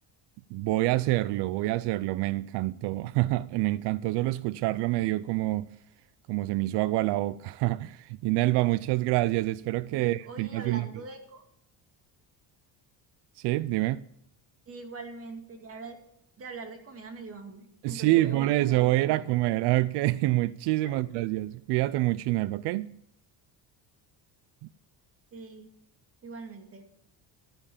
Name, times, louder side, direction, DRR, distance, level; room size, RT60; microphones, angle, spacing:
voice 1, 0.5-5.7 6.3-10.9 13.4-14.0 17.8-22.9, right 17 dB, 80° right, 0.5 m, -27 dB
voice 2, 9.9-11.4 14.7-16.0 16.4-19.4 20.8-21.1 25.3-25.7 26.2-26.9, right 3 dB, 35° right, 2.3 m, -43 dB
13.5 x 10.0 x 7.1 m
cardioid pair, 170°, 41 cm